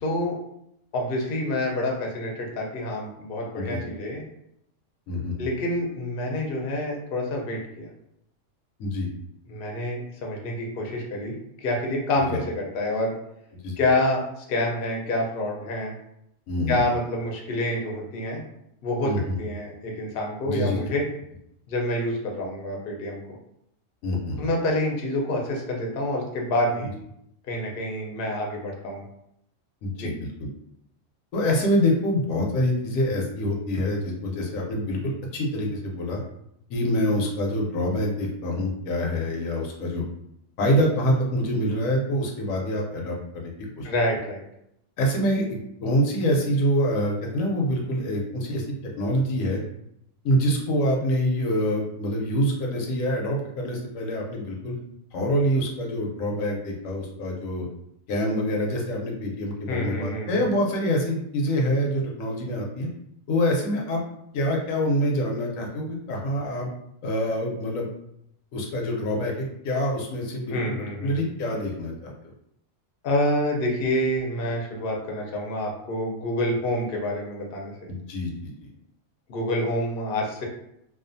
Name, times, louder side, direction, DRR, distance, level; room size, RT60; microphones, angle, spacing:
voice 1, 0.0-0.4 0.9-4.2 5.4-7.9 9.5-13.1 13.8-15.9 16.7-18.4 18.8-21.1 21.7-23.4 24.4-26.9 27.5-29.0 30.0-30.1 43.8-44.4 59.7-60.4 70.5-71.2 73.0-77.7 79.3-80.5, left 1 dB, 55° left, 0 dB, 0.7 m, -27 dB
voice 2, 16.5-16.8 19.0-19.4 20.4-20.8 24.0-24.5 29.8-30.5 31.3-36.2 36.7-40.0 40.6-43.9 45.0-49.6 50.2-54.7 55.1-57.7 58.1-62.9 63.3-64.0 64.3-66.7 67.0-67.9 68.5-70.7 71.0-72.1 77.9-78.5, equal, 80° left, 0 dB, 1.0 m, -26 dB
2.4 x 2.4 x 2.5 m, 0.77 s
omnidirectional pair, 1.4 m